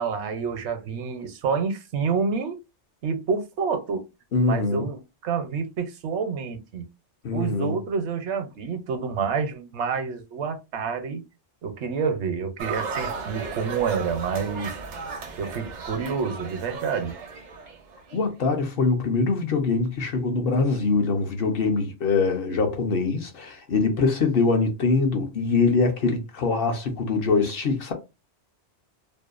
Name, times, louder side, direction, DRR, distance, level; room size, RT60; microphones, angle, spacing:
voice 1, 0.0-2.6 3.0-4.1 4.5-6.8 7.3-11.2 11.6-14.8 15.4-17.1, right 5 dB, 75° right, 0.9 m, -28 dB
voice 2, 4.3-4.9 7.2-7.8 18.1-27.9, left 4 dB, 60° left, 0.7 m, -23 dB
sound 1, 12.6-18.2, right 5 dB, 55° right, 0.5 m, -35 dB
2.7 x 2.1 x 2.3 m
omnidirectional pair, 1.2 m